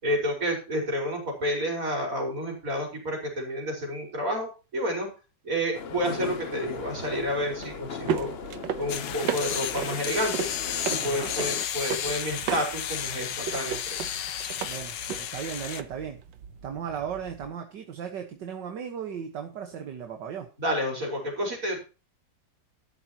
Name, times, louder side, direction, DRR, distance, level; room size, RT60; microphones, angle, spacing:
voice 1, 0.0-5.1 5.4-8.3 8.7-10.5 10.9-14.1 20.6-21.8, equal, 45° right, 0 dB, 5.1 m, -30 dB
sound 1, 5.7-11.7, left 7 dB, 45° left, 0.8 m, -39 dB
sound 2, 6.6-17.5, right 8 dB, 90° right, 1.6 m, -36 dB
sound 3, 8.9-15.8, left 10 dB, 75° left, 1.6 m, -33 dB
voice 2, 11.0-11.3 14.6-16.2 16.6-20.5, right 8 dB, 70° right, 5 dB, 1.9 m, -36 dB
13.0 x 11.5 x 2.9 m, 0.32 s
omnidirectional pair, 2.0 m